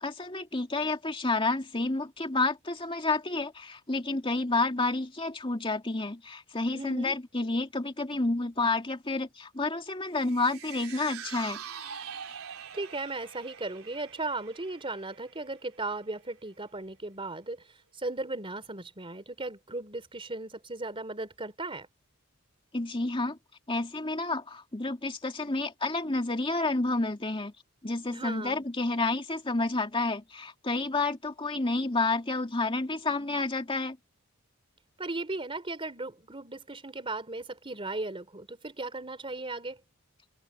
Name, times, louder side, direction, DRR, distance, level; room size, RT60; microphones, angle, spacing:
voice 1, 0.0-11.6 22.7-23.4 23.7-27.5 27.8-34.0, left 3 dB, 25° left, 2.4 m, -30 dB
voice 2, 6.7-7.1 12.7-21.9 28.1-28.6 35.0-39.8, right 2 dB, 25° right, 3.5 m, -37 dB
sound 1, 10.1-16.6 16.9-17.0, right 7 dB, 80° right, 3.6 m, -45 dB
head